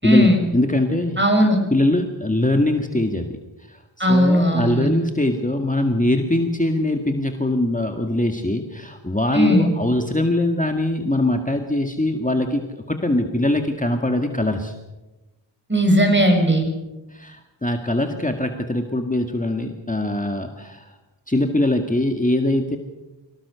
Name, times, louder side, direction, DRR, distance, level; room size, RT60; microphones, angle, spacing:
voice 1, 0.0-0.4 1.2-1.6 4.0-4.9 9.3-9.7 15.7-16.6, equal, 25° right, 4 dB, 6.6 m, -17 dB
voice 2, 0.5-1.2 1.7-3.3 3.7-14.7 17.1-20.9 21.3-22.8, left 1 dB, 15° left, 4 dB, 1.9 m, -22 dB
24.0 x 18.0 x 7.0 m, 1.1 s
wide cardioid pair, 50°, 46 cm